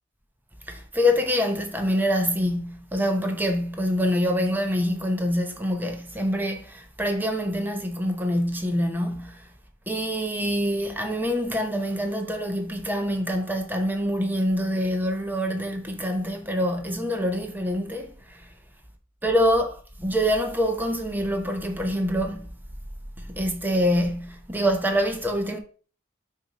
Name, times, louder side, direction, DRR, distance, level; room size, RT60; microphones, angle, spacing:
voice 1, 0.7-9.5 9.9-18.5 19.2-22.5 23.2-25.6, equal, 10° right, 0.8 m, -25 dB
6.8 x 2.8 x 5.0 m
head